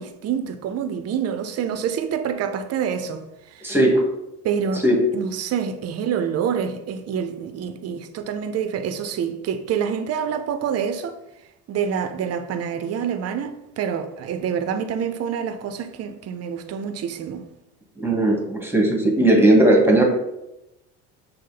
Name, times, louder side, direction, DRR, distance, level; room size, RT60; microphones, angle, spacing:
voice 1, 0.0-3.2 3.5-3.7 4.4-4.8 5.1-11.2 11.7-17.5, right 7 dB, 45° right, 0.6 m, -27 dB
voice 2, 3.6-4.1 4.8-5.0 18.0-20.1, right 1 dB, 5° right, 1.3 m, -17 dB
6.3 x 2.1 x 3.9 m
supercardioid pair, 85°, 36 cm